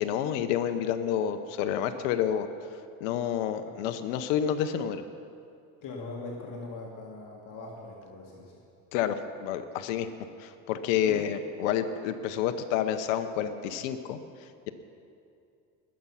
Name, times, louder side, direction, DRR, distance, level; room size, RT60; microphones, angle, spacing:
voice 1, 0.0-2.5 3.0-5.0 8.9-10.1 10.4-14.2, left 9 dB, 85° left, 9 dB, 0.9 m, -29 dB
voice 2, 5.8-8.6 11.0-11.3, left 3 dB, 55° left, -2 dB, 2.1 m, -41 dB
20.5 x 7.5 x 5.7 m, 2.5 s
supercardioid pair, 90°, 39 cm